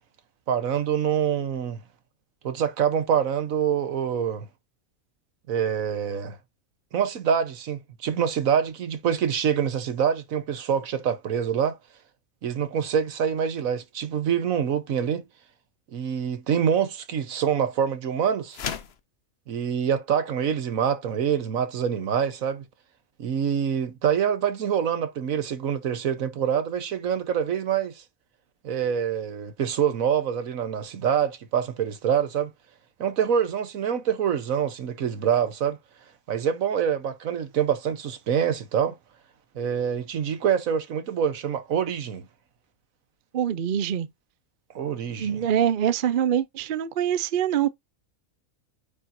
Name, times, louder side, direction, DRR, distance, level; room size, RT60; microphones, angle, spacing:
voice 1, 0.5-1.8 2.4-4.5 5.5-6.4 6.9-11.8 12.4-15.3 15.9-18.6 19.5-22.7 23.2-28.0 28.6-32.5 33.0-35.8 36.3-39.0 39.5-42.2 44.7-45.4, right 8 dB, 75° right, 1.4 m, -25 dB
sound 1, 18.5-19.0, left 7 dB, 55° left, 0.9 m, -33 dB
voice 2, 43.3-44.1 45.2-47.7, right 9 dB, 55° right, 0.6 m, -24 dB
9.0 x 4.0 x 2.6 m
omnidirectional pair, 1.5 m